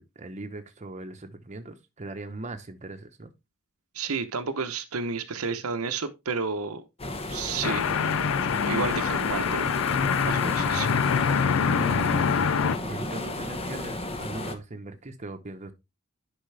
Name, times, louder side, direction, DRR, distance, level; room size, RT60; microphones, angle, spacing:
voice 1, 0.0-3.3 11.7-12.3 12.8-15.7, right 2 dB, 35° right, 1.0 m, -39 dB
voice 2, 3.9-6.9 7.3-8.0 8.6-9.8 10.2-10.9, right 5 dB, 75° right, 0.9 m, -31 dB
sound 1, 7.0-14.6, left 1 dB, 25° left, 1.2 m, -34 dB
sound 2, 7.6-12.8, left 6 dB, 65° left, 0.5 m, -25 dB
10.5 x 5.3 x 3.3 m
head